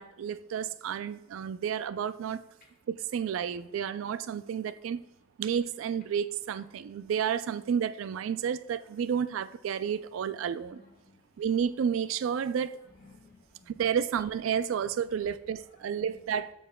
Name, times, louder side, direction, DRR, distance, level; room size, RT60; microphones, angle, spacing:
voice 1, 0.0-2.4 2.9-5.0 5.4-10.8 11.4-12.8 13.7-16.5, right 8 dB, 75° right, 0.3 m, -31 dB
voice 2, 10.4-11.4 12.8-13.7 15.9-16.2, left 3 dB, 50° left, 1.6 m, -58 dB
8.4 x 5.3 x 2.3 m
head